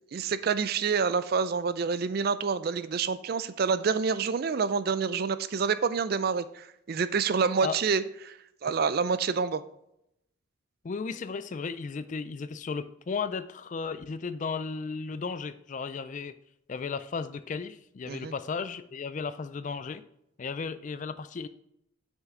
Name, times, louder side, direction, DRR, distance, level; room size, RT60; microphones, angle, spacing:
voice 1, 0.1-9.6 18.1-18.3, right 5 dB, 45° right, 14 dB, 0.4 m, -28 dB
voice 2, 10.8-16.3 16.7-20.0 20.4-21.5, left 5 dB, 35° left, 13 dB, 0.3 m, -35 dB
7.4 x 6.4 x 3.7 m, 0.78 s
head